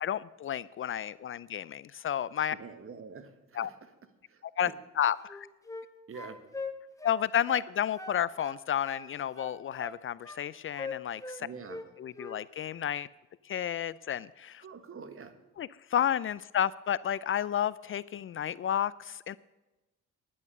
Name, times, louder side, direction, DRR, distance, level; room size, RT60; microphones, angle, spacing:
voice 1, 0.0-2.5 3.6-3.7 4.6-4.7 5.0-5.5 7.0-11.5 12.0-13.1 13.4-14.6 15.6-19.4, left 10 dB, 45° left, 19 dB, 0.4 m, -31 dB
voice 2, 2.5-3.9 4.3-4.4 6.1-6.4 11.4-11.8 14.6-15.4, right 5 dB, 45° right, 10 dB, 1.5 m, -46 dB
sound 1, 5.2-5.9 6.1-7.7 8.0-9.1 9.4-10.4 10.8-11.9 12.1-12.4, left 3 dB, 10° left, 1.4 m, -41 dB
11.0 x 10.5 x 6.6 m, 1.1 s
cardioid pair, 90°, 30 cm